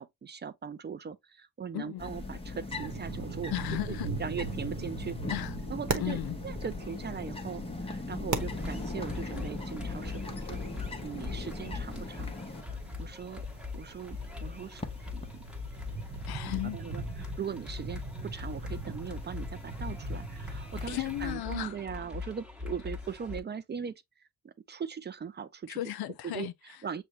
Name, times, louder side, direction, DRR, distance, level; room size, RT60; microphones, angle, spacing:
voice 1, 0.0-3.5 3.9-5.2 5.7-10.6 11.0-12.4 12.7-13.5 13.7-14.8 15.1-15.4 15.9-16.0 16.4-25.8 26.2-26.5 26.8-27.0, right 7 dB, 30° right, 0.4 m, -40 dB
sound 1, 2.0-21.3, left 2 dB, 15° left, 0.8 m, -41 dB
sound 2, 2.7-21.3, right 4 dB, 50° right, 1.0 m, -41 dB
voice 2, 3.5-4.1 5.3-5.5 6.0-6.4 16.3-16.8 20.9-21.8 25.7-26.8, left 14 dB, 85° left, 0.6 m, -35 dB
sound 3, 8.4-23.4, left 5 dB, 5° right, 1.1 m, -41 dB
6.4 x 2.2 x 2.8 m
cardioid pair, 100°, 36 cm